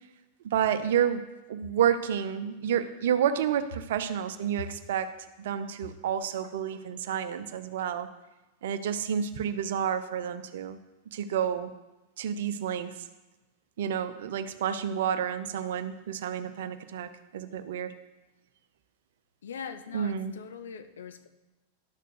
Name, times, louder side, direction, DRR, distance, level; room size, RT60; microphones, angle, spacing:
voice 1, 0.4-1.2 1.5-5.1 5.4-8.1 8.6-10.8 11.1-11.7 12.2-12.9 13.8-17.9 19.9-20.3, right 9 dB, 60° right, 11 dB, 0.7 m, -30 dB
voice 2, 19.4-21.3, left 6 dB, 65° left, 10 dB, 0.9 m, -41 dB
11.5 x 6.7 x 6.4 m, 1.1 s
figure-of-eight pair, 90°, 0 cm